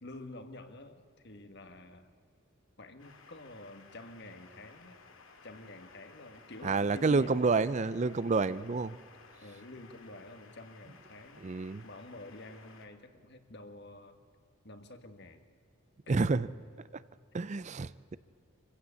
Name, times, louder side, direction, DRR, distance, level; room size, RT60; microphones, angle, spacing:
voice 1, 0.0-2.1 2.8-5.0 5.4-7.6 8.5-8.8 9.4-11.4 11.8-14.2 14.6-15.4 16.1-16.2, left 2 dB, 55° left, 8 dB, 1.7 m, -49 dB
sound 1, 3.0-12.9, left 4 dB, 75° left, 2.1 m, -57 dB
voice 2, 6.6-8.9 11.4-11.8 16.1-16.5 16.9-17.0 17.3-18.2, right 4 dB, 35° right, 17 dB, 0.4 m, -29 dB
25.5 x 15.5 x 8.4 m, 2.4 s
head